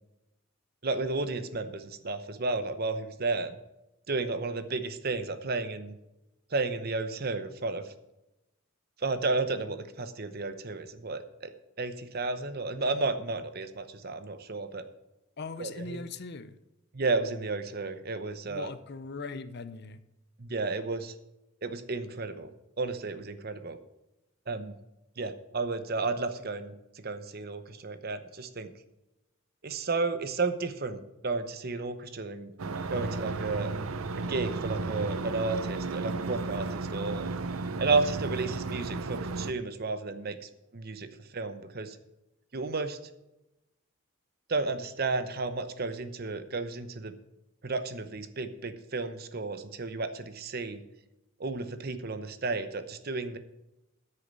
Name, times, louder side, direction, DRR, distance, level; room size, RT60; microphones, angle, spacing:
voice 1, 0.8-3.6 4.1-6.0 6.5-7.9 9.0-11.5 11.8-14.8 15.6-16.0 16.9-18.7 20.4-21.1 21.6-22.5 22.8-23.8 24.5-24.8 25.2-28.7 29.6-32.5 32.9-33.7 34.2-37.3 37.8-42.0 42.5-43.0 44.5-47.1 47.6-50.8 51.4-53.4, right 3 dB, 45° right, 11 dB, 0.8 m, -32 dB
voice 2, 15.4-16.6 18.4-20.0, left 3 dB, 50° left, 13 dB, 0.6 m, -40 dB
sound 1, 32.6-39.5, right 3 dB, 80° right, 0.6 m, -34 dB
9.3 x 6.6 x 7.5 m, 0.94 s
head